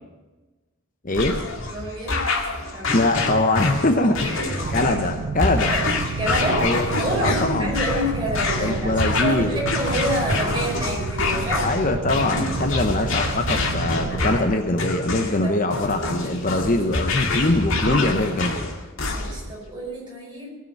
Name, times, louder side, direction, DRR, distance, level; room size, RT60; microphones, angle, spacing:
sound 1, 1.1-19.5, left 3 dB, 65° left, 2.1 m, -26 dB
voice 1, 1.7-2.2 2.7-3.0 4.2-5.2 5.7-5.8 6.2-6.7 7.0-11.7 15.4-15.5 19.0-20.6, equal, 20° right, -4 dB, 5.3 m, -28 dB
voice 2, 2.9-4.3 4.7-5.7 6.4-6.9 7.2-7.7 8.6-9.6 11.6-18.7, left 2 dB, 35° left, 5 dB, 0.9 m, -22 dB
sound 2, 4.6-14.6, right 4 dB, 60° right, 0.5 m, -31 dB
18.5 x 6.8 x 8.0 m, 1.2 s
head